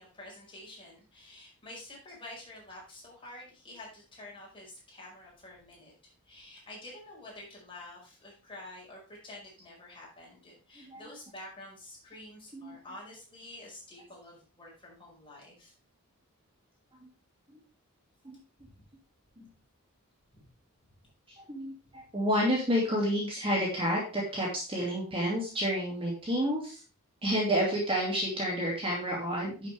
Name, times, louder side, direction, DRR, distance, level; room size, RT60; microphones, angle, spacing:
voice 1, 0.0-15.7 18.6-18.8 20.3-20.4, left 1 dB, 25° left, -4 dB, 5.1 m, -49 dB
voice 2, 10.8-11.1 12.5-12.8 17.0-17.1 18.2-18.4 19.4-19.5 21.4-26.8 27.2-29.7, equal, 25° right, -3 dB, 2.5 m, -30 dB
10.5 x 6.8 x 3.5 m, 0.34 s
head